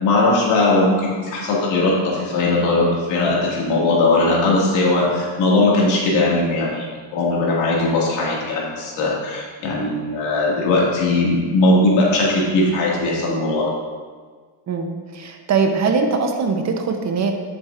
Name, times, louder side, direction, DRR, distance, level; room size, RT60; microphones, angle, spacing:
voice 1, 0.0-6.9 7.1-13.7, left 2 dB, 90° left, -4 dB, 2.2 m, -19 dB
voice 2, 14.7-17.3, right 4 dB, 35° right, 5 dB, 0.8 m, -21 dB
9.6 x 7.4 x 2.5 m, 1.5 s
cardioid pair, 130°, 45 cm